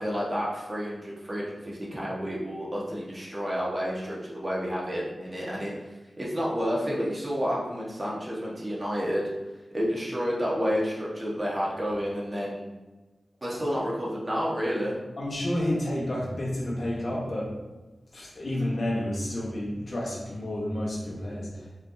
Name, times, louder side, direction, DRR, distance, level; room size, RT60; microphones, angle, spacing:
voice 1, 0.0-9.2 9.7-12.6 13.4-15.0, equal, 30° right, -5 dB, 1.4 m, -30 dB
voice 2, 15.2-17.6 18.1-21.7, left 1 dB, 60° left, -4 dB, 1.3 m, -30 dB
5.0 x 3.4 x 2.8 m, 1.2 s
cardioid pair, 55°, 0 cm